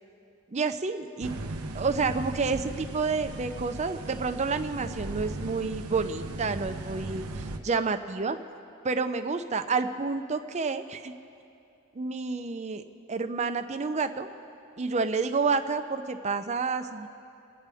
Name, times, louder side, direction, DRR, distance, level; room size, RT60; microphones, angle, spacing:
voice 1, 0.5-1.3 1.7-8.4 8.8-11.1 12.0-12.8 13.1-14.3 14.8-17.1, right 4 dB, 30° right, 8 dB, 0.5 m, -29 dB
sound 1, 1.2-7.6, right 2 dB, 75° right, 0.7 m, -37 dB
28.0 x 9.5 x 3.5 m, 2.7 s
head